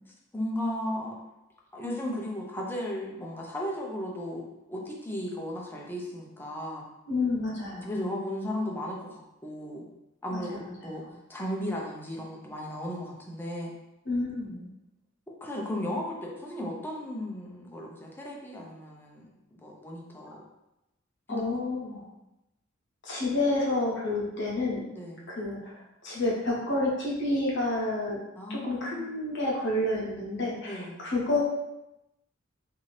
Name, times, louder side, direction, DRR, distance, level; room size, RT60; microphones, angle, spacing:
voice 1, 0.3-1.1 1.7-6.9 7.8-9.9 10.2-11.0 11.3-13.7 15.4-20.5 21.3-21.6 24.9-25.3 28.4-29.0 30.6-31.0, left 1 dB, 10° left, -3 dB, 0.5 m, -35 dB
voice 2, 7.1-7.9 10.3-10.9 14.1-14.7 21.3-22.0 23.0-24.9 25.3-25.8 26.0-28.2 28.5-31.4, left 2 dB, 60° left, -3 dB, 0.8 m, -29 dB
2.6 x 2.5 x 3.2 m, 0.91 s
head